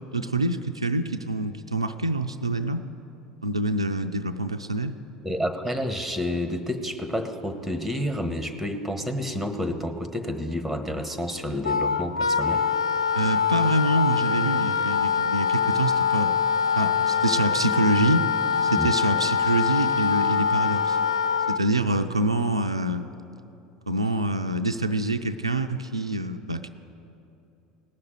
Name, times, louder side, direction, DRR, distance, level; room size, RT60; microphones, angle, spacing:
voice 1, 0.1-2.9 3.4-4.9 13.1-16.4 16.8-21.0 21.5-23.1 23.9-26.7, right 2 dB, 90° right, 7 dB, 0.4 m, -26 dB
voice 2, 5.2-12.6 18.8-18.9, left 1 dB, ahead, 8 dB, 1.3 m, -29 dB
Wind instrument woodwind instrument, 11.6-21.6, left 6 dB, 85° left, 0.4 m, -24 dB
18.0 x 6.6 x 9.1 m, 2.8 s
figure-of-eight pair, 70°, 3 cm